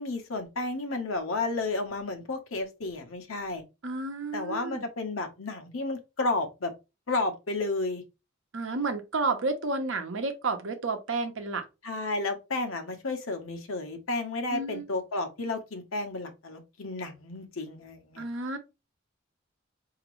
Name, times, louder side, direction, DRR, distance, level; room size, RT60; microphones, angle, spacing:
voice 1, 0.0-3.6 4.3-6.7 7.1-8.0 11.8-18.2, left 2 dB, 80° left, 1.0 m, -32 dB
voice 2, 3.8-4.9 8.5-11.6 14.5-14.8 18.2-18.6, right 3 dB, 65° right, 0.9 m, -31 dB
5.0 x 2.9 x 3.1 m
head